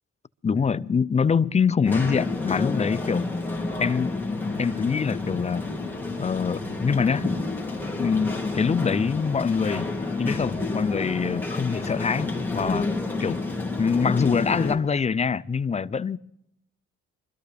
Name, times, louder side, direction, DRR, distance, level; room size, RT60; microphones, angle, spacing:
voice 1, 0.4-3.3 3.8-4.2 4.6-5.7 6.2-7.3 8.0-9.9 10.2-12.9 13.2-13.4 13.8-16.2, left 6 dB, 25° left, 0.5 m, -24 dB
sound 1, 1.8-14.8, left 3 dB, 5° left, 2.7 m, -30 dB
24.0 x 13.0 x 3.4 m
cardioid pair, 90°, 30 cm